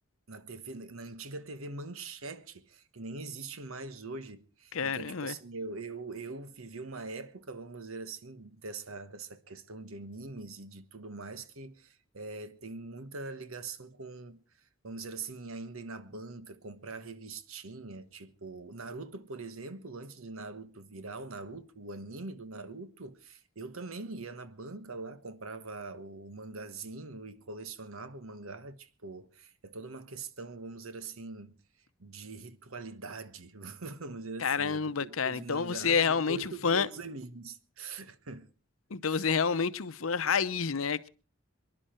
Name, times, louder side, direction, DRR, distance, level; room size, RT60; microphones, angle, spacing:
voice 1, 0.3-14.4 14.8-31.6 32.0-38.5 39.1-39.2, right 3 dB, 90° right, 1.4 m, -43 dB
voice 2, 4.7-5.3 34.4-36.9 38.9-41.1, left 6 dB, 85° left, 0.8 m, -29 dB
24.5 x 11.0 x 4.4 m
head